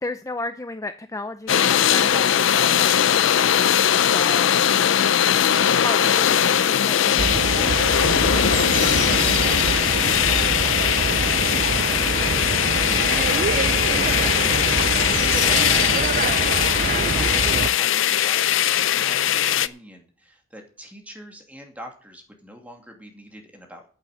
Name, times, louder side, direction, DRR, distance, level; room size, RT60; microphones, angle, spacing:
voice 1, 0.0-3.8 4.1-4.5 5.8-7.9, left 2 dB, 15° left, 9 dB, 0.5 m, -33 dB
sound 1, 1.5-19.7, left 10 dB, 70° left, 0.5 m, -20 dB
sound 2, 7.2-17.7, right 4 dB, 40° right, 0.4 m, -25 dB
voice 2, 8.3-23.9, equal, 10° right, 2 dB, 2.5 m, -43 dB
9.1 x 8.9 x 7.8 m, 0.42 s
head